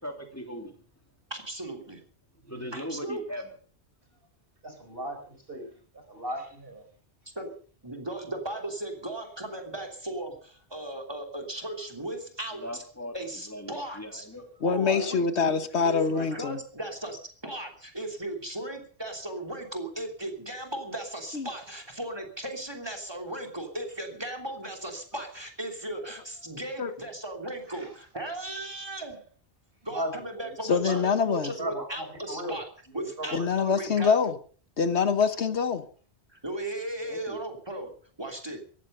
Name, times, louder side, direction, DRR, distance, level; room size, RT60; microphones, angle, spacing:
voice 1, 0.0-0.7 2.4-3.4 12.6-13.1 13.5-14.5 37.0-37.4, equal, 15° left, 3 dB, 3.3 m, -39 dB
voice 2, 1.3-2.0 2.7-3.2 7.3-7.5 7.8-12.8 13.1-14.3 14.6-15.5 15.8-29.3 29.8-32.7 32.9-34.3 36.3-38.6, right 1 dB, 20° right, 3 dB, 3.2 m, -37 dB
voice 3, 4.6-6.9 14.8-15.1 16.1-16.4 27.7-27.9 29.9-30.1 30.4-30.5 30.9-31.2 31.6-32.6 32.9-33.7, right 1 dB, 55° right, 5 dB, 4.9 m, -37 dB
voice 4, 14.6-16.6 21.3-21.5 26.8-26.9 30.7-31.5 33.3-34.3 34.8-35.8, left 5 dB, 75° left, 11 dB, 1.5 m, -25 dB
17.5 x 14.5 x 5.5 m, 0.43 s
omnidirectional pair, 1.1 m